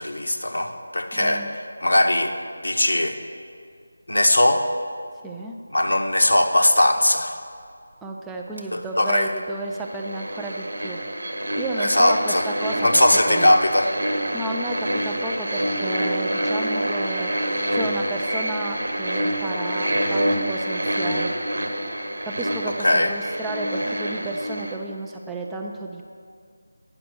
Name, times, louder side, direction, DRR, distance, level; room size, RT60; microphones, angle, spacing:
voice 1, 0.0-2.3 2.6-3.2 4.1-4.6 5.7-7.4 8.7-9.3 11.8-12.5 12.8-13.9 22.8-23.1, left 1 dB, 75° left, 5 dB, 0.9 m, -20 dB
voice 2, 1.1-1.5 5.2-5.5 8.0-11.0 11.5-13.5 14.3-17.3 17.7-21.3 22.3-26.1, right 2 dB, 5° right, 0 dB, 0.4 m, -32 dB
sound 1, 8.6-8.7 9.8-24.8, right 1 dB, 70° right, 1.1 m, -27 dB
9.7 x 5.9 x 6.5 m, 2.2 s
figure-of-eight pair, 160°, 0 cm